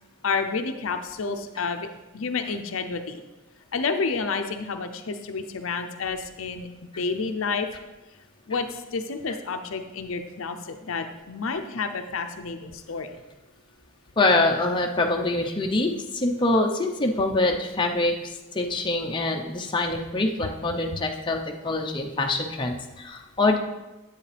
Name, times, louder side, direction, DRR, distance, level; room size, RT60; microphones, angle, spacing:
voice 1, 0.2-1.9 2.1-3.2 3.7-7.7 8.5-13.2, left 4 dB, 70° left, 7 dB, 0.6 m, -30 dB
voice 2, 14.2-18.1 18.5-21.4 21.6-23.6, left 2 dB, 25° left, 1 dB, 0.7 m, -24 dB
9.8 x 8.3 x 3.4 m, 1.1 s
head